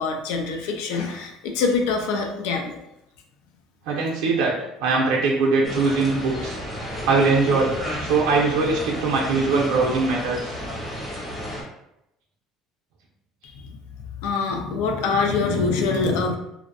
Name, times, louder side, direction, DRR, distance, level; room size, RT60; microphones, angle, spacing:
voice 1, 0.0-2.8 13.4-13.8 14.2-16.4, left 4 dB, 85° left, 3 dB, 0.4 m, -24 dB
voice 2, 3.9-6.6 7.0-7.7 8.0-10.6, right 4 dB, 90° right, -3 dB, 0.5 m, -21 dB
sound 1, 5.6-11.6, equal, 5° left, 0.6 m, -32 dB
2.5 x 2.0 x 2.5 m, 0.83 s
cardioid pair, 145°, 0 cm